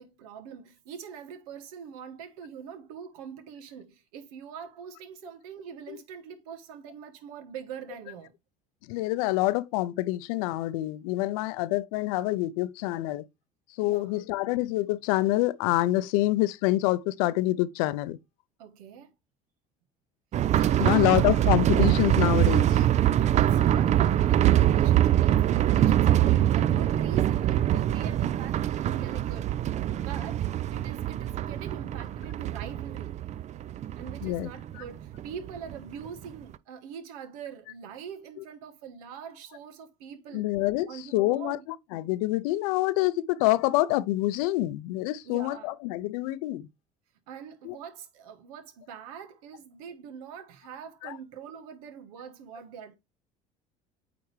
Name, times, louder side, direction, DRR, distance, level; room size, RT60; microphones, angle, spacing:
voice 1, 0.0-8.3 13.8-14.2 18.6-19.1 20.5-21.7 23.2-29.6 29.9-33.2 34.0-40.5 40.9-41.6 45.2-45.8 47.3-52.9, right 7 dB, 85° right, 1.3 m, -43 dB
voice 2, 8.9-13.2 13.8-18.2 20.8-22.8 34.2-34.5 40.3-40.9 41.1-41.6 41.9-46.7 47.7-47.8 51.0-51.1, left 17 dB, 80° left, 0.5 m, -26 dB
sound 1, 20.3-35.8 36.1-36.2 36.5-36.6, right 12 dB, 40° right, 0.4 m, -24 dB
8.7 x 3.4 x 3.2 m
supercardioid pair, 85°, 18 cm